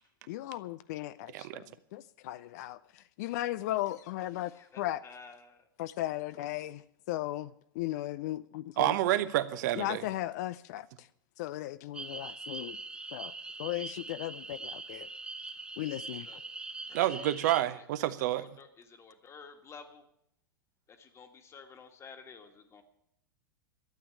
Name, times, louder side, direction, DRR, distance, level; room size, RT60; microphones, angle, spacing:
voice 1, 0.3-5.0 5.8-8.9 9.7-11.1 11.4-12.8 13.1-13.3 13.6-15.1 15.8-16.4, left 15 dB, 50° left, 0.5 m, -37 dB
voice 2, 1.3-1.6 8.8-10.0 16.9-18.5, right 14 dB, 50° right, 0.9 m, -29 dB
voice 3, 4.6-5.6 16.3-16.4 17.0-17.1 18.3-18.7 19.0-20.0 21.0-22.8, left 5 dB, 25° left, 1.7 m, -51 dB
sound 1, 11.9-17.6, right 3 dB, 10° right, 0.7 m, -42 dB
12.5 x 8.6 x 8.6 m
figure-of-eight pair, 95°, 12 cm